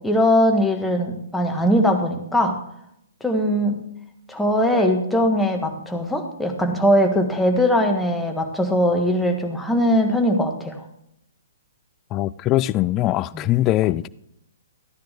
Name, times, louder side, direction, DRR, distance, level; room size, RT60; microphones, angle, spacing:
voice 1, 0.0-2.6 3.2-3.8 4.3-10.8 13.3-13.4, equal, 5° left, 1.4 m, -20 dB
voice 2, 12.1-14.1, left 15 dB, 25° left, 0.3 m, -21 dB
14.0 x 10.0 x 3.5 m
figure-of-eight pair, 120°, 0 cm